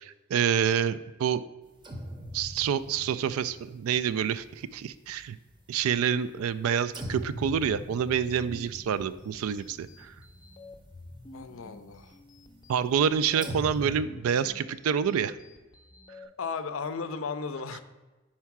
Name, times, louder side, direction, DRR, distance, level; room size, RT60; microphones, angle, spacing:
voice 1, 0.0-1.4 2.3-5.4 5.7-10.2 12.7-15.3, right 7 dB, 75° right, 15 dB, 0.3 m, -27 dB
sound 1, 1.8-5.3 5.6-6.6 6.9-14.0, equal, 20° right, 0.7 m, -43 dB
sound 2, 8.0-16.3, left 2 dB, 20° left, 0.6 m, -50 dB
voice 2, 11.3-12.2 16.4-17.8, left 5 dB, 65° left, 11 dB, 0.5 m, -35 dB
4.7 x 4.4 x 5.8 m, 1.2 s
head